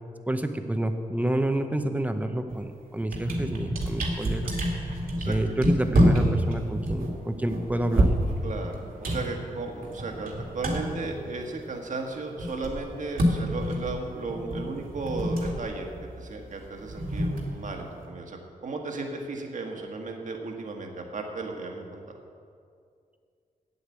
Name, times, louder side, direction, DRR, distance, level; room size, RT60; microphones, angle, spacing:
voice 1, 0.3-4.5 5.2-8.1, right 1 dB, 10° right, 7 dB, 0.8 m, -28 dB
sound 1, 2.5-2.7 3.0-11.9 12.1-18.1, equal, 80° right, 2.1 m, -28 dB
voice 2, 8.4-15.9 16.2-22.2, right 3 dB, 60° right, 2 dB, 1.5 m, -35 dB
8.6 x 8.2 x 8.3 m, 2.3 s
wide cardioid pair, 105°, 15 cm